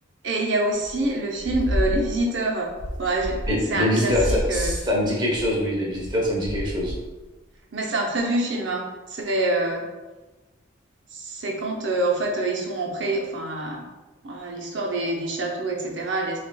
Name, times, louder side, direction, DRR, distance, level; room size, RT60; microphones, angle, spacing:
voice 1, 0.2-2.7 3.0-3.4 3.7-4.7 7.7-9.8 11.1-13.8 14.2-16.4, right 2 dB, 65° right, 0 dB, 0.7 m, -26 dB
sound 1, 0.8-1.1 1.4-2.3 2.6-3.8 4.0-7.2, equal, 80° left, 0.9 m, -30 dB
voice 2, 3.5-6.9, left 1 dB, 25° right, -4 dB, 0.9 m, -24 dB
5.9 x 2.4 x 2.3 m, 1.2 s
head